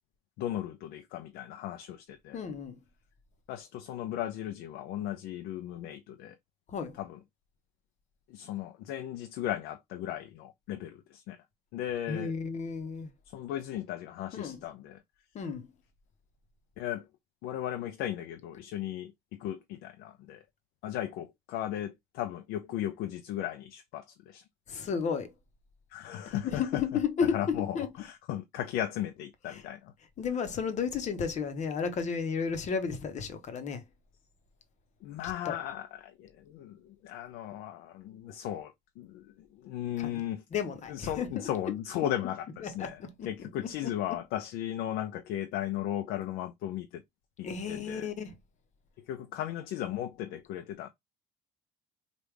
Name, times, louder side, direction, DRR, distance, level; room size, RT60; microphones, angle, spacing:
voice 1, 0.4-2.4 3.5-6.4 7.0-7.2 8.3-11.4 11.7-12.3 13.3-15.0 16.8-17.1 17.4-20.4 20.8-24.4 25.9-26.8 27.3-29.9 35.0-40.4 40.9-47.0 47.4-48.1 49.1-50.9, left 12 dB, 70° left, 0.5 m, -36 dB
voice 2, 2.3-2.8 6.7-7.0 12.1-13.1 14.3-14.6 15.3-15.7 24.7-25.4 26.3-27.9 29.5-29.6 30.2-33.8 35.2-35.6 40.0-40.2 40.5-41.7 42.6-43.9 47.4-48.3, left 6 dB, 45° left, 1.0 m, -33 dB
3.4 x 2.5 x 3.2 m
supercardioid pair, 80°, 16 cm